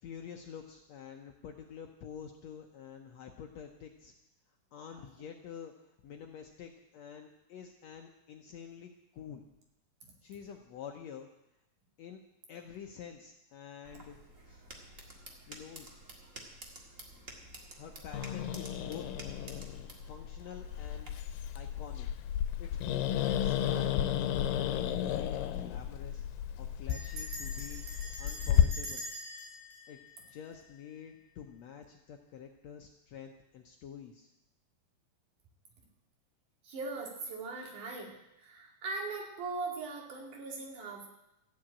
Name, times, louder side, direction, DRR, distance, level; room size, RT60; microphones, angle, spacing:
voice 1, 0.0-4.1 4.7-9.5 10.2-11.3 12.0-12.2 12.5-14.2 14.4-14.6 15.5-15.9 17.8-19.0 19.5-19.6 20.0-21.1 21.5-22.1 22.6-27.8 28.2-29.1 29.9-30.0 30.3-34.3, left 8 dB, 75° left, 3 dB, 1.7 m, -48 dB
sound 1, 13.8-21.1, right 1 dB, 35° right, 1.4 m, -51 dB
Growling, 18.1-28.6, left 10 dB, 90° left, 2.4 m, -33 dB
Bell, 26.9-31.0, equal, 80° right, 5.1 m, -45 dB
voice 2, 36.6-41.1, right 3 dB, 65° right, 0 dB, 3.8 m, -40 dB
14.0 x 7.8 x 8.7 m, 0.88 s
omnidirectional pair, 3.9 m